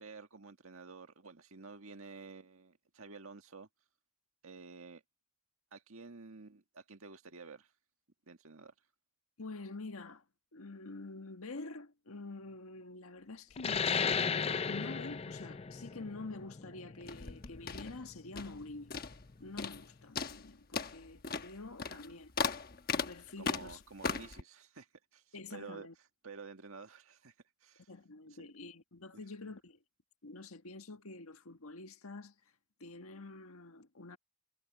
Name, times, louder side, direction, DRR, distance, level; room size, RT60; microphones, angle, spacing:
voice 1, 0.0-3.7 4.4-5.0 5.7-7.7 8.3-8.7 21.9-22.0 23.4-25.9 26.2-27.3 27.6-27.9 28.4-28.5, right 4 dB, 75° right, 1.8 m, -51 dB
voice 2, 9.4-10.2 10.5-19.0 19.4-22.3 22.9-23.8 25.3-25.9 27.9-29.8 30.2-32.3 32.8-34.2, left 3 dB, 85° left, 1.6 m, -47 dB
sound 1, 13.6-18.7, left 6 dB, 30° left, 0.4 m, -35 dB
sound 2, 17.0-18.6 18.9-19.3 19.6-19.9 20.2-24.4, left 5 dB, 45° left, 1.1 m, -38 dB
head